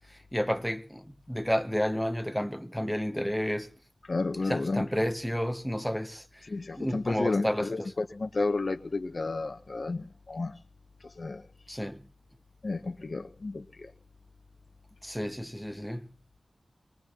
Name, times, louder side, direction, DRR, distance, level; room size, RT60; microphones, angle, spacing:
voice 1, 0.1-3.7 4.4-6.4 6.8-7.9 11.7-12.0 15.0-16.1, equal, ahead, 0.8 m, -31 dB
voice 2, 4.1-5.0 6.4-10.5 11.2-11.4 12.6-13.9, left 3 dB, 55° left, 0.9 m, -32 dB
23.0 x 19.5 x 2.9 m
wide cardioid pair, 85°, 0 cm